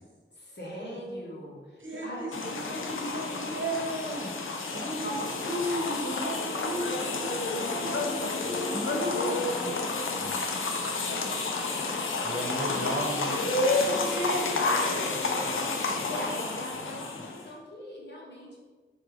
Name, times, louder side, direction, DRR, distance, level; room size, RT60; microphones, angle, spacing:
voice 1, 0.4-2.5 5.0-5.2 10.9-12.0 15.3-15.7 16.1-18.6, equal, 60° left, -4 dB, 1.1 m, -40 dB
voice 2, 1.8-4.4 4.7-5.1 5.4-7.3 7.6-9.3 9.6-10.4 12.2-14.6 17.1-17.2, right 1 dB, 75° right, -2 dB, 1.0 m, -35 dB
sound 1, 2.3-17.5, left 3 dB, 85° left, 0.4 m, -30 dB
4.5 x 2.4 x 3.2 m, 1.3 s
wide cardioid pair, 50°, 20 cm